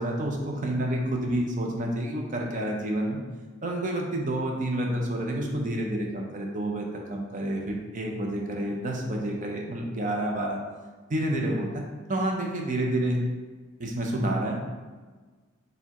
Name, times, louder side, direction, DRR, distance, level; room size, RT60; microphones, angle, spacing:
voice 1, 0.0-3.2 3.6-10.6 11.1-11.8 12.1-13.2 13.8-14.6, right 1 dB, 40° right, 0 dB, 0.6 m, -29 dB
4.4 x 3.4 x 2.9 m, 1.4 s
head